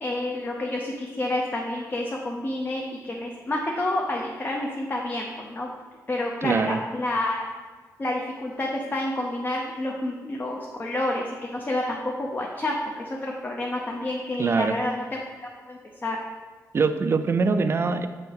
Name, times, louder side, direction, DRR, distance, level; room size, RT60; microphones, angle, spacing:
voice 1, 0.0-5.7 6.1-7.4 8.0-15.2 15.7-16.2, left 1 dB, 30° left, -1 dB, 0.6 m, -29 dB
voice 2, 6.4-6.8 14.4-14.8 16.7-18.1, right 4 dB, 40° right, 10 dB, 0.4 m, -23 dB
7.2 x 3.2 x 4.7 m, 1.4 s
cardioid pair, 110°, 6 cm